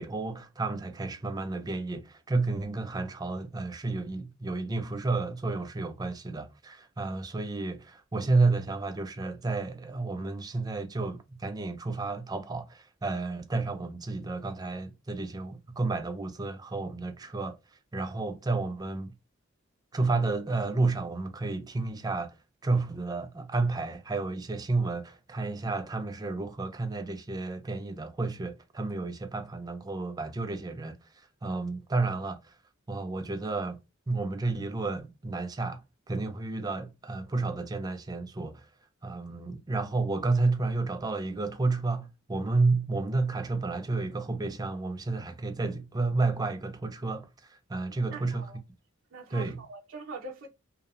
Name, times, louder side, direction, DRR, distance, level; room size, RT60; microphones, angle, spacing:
voice 1, 0.0-17.6 17.9-19.1 19.9-22.3 22.6-31.0 31.4-32.5 32.9-33.8 34.1-35.8 36.1-38.6 39.0-48.5 49.3-49.6, right 3 dB, 20° right, 0.4 m, -31 dB
voice 2, 48.1-48.6 49.1-50.5, right 3 dB, 75° right, 0.7 m, -43 dB
2.8 x 2.0 x 2.3 m
head